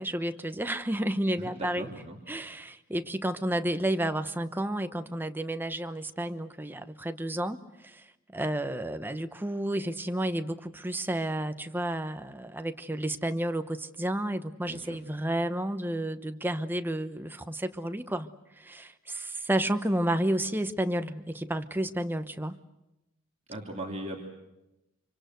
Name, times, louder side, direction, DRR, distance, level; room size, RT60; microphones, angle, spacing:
voice 1, 0.0-1.9 2.3-8.0 8.3-18.3 18.6-22.6, right 1 dB, 10° right, 9 dB, 1.0 m, -31 dB
voice 2, 1.4-2.2 14.7-15.0 23.5-24.2, right 1 dB, 30° right, 0 dB, 2.9 m, -38 dB
25.5 x 24.5 x 8.0 m, 0.94 s
head